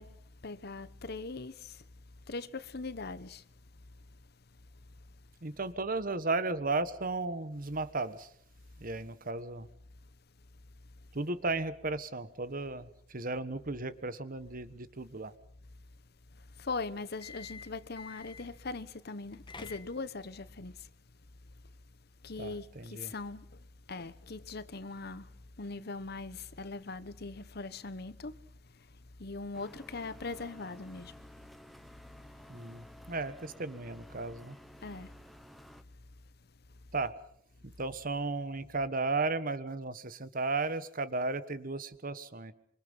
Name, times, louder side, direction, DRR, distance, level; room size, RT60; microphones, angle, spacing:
voice 1, 0.0-3.5 4.0-4.2 4.5-5.1 16.3-20.9 22.2-31.6 32.2-32.3 32.6-32.7 34.8-35.2 35.9-36.0 36.7-36.8, left 3 dB, 55° left, 1.1 m, -41 dB
voice 2, 5.4-8.3 8.8-9.7 11.1-15.3 22.4-23.1 32.5-34.6 36.9-37.1 37.6-42.5, right 3 dB, 45° right, 1.4 m, -35 dB
sound 1, 17.1-18.6 19.2-20.3, left 5 dB, 25° left, 1.4 m, -49 dB
sound 2, 29.5-35.8, equal, ahead, 1.0 m, -54 dB
26.0 x 24.5 x 5.6 m
head